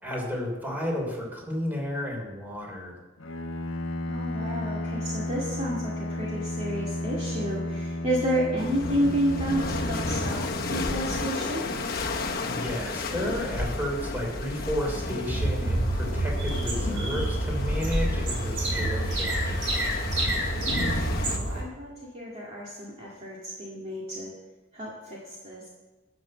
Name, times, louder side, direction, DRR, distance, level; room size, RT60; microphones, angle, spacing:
voice 1, 0.0-3.0 12.4-19.6, left 1 dB, 10° right, -1 dB, 3.0 m, -32 dB
Bowed string instrument, 3.2-11.2, left 1 dB, 90° left, 1.0 m, -33 dB
voice 2, 4.1-11.7 20.8-24.3 24.7-25.7, equal, 30° right, -5 dB, 2.0 m, -31 dB
sound 1, 8.6-21.4, left 2 dB, 50° left, 1.1 m, -32 dB
sound 2, 15.2-21.6, right 1 dB, 65° right, 4.8 m, -28 dB
13.0 x 6.1 x 7.3 m, 1.2 s
head